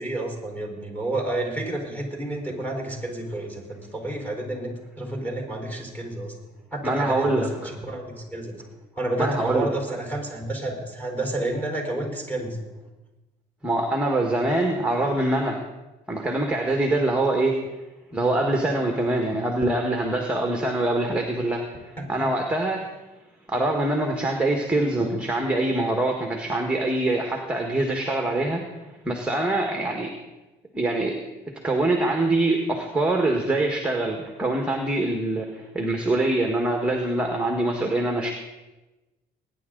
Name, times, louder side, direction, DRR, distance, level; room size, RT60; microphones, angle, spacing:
voice 1, 0.0-6.3 6.7-8.6 9.0-12.6 22.0-22.3, right 1 dB, 10° left, 1 dB, 4.6 m, -30 dB
voice 2, 6.8-7.8 9.2-9.7 13.6-15.6 16.1-17.6 18.1-22.9 23.5-30.1 30.7-31.2 31.6-38.3, right 2 dB, 5° right, 3 dB, 1.6 m, -24 dB
21.5 x 10.0 x 3.9 m, 1.1 s
cardioid pair, 110°, 17 cm